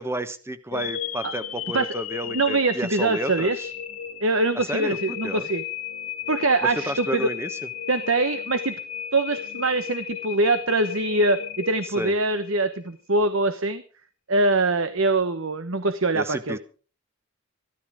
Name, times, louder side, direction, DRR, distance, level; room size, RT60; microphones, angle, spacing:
voice 1, 0.0-3.7 4.5-5.5 6.6-7.7 11.8-12.1 16.1-16.6, right 1 dB, 10° right, 12 dB, 1.1 m, -31 dB
sound 1, 0.7-12.8, left 9 dB, 80° left, 1.8 m, -34 dB
voice 2, 2.3-3.7 4.2-5.6 6.3-7.3 7.9-8.7 9.1-13.8 14.3-16.6, right 2 dB, 65° right, 10 dB, 1.1 m, -23 dB
15.0 x 13.5 x 5.0 m, 0.38 s
head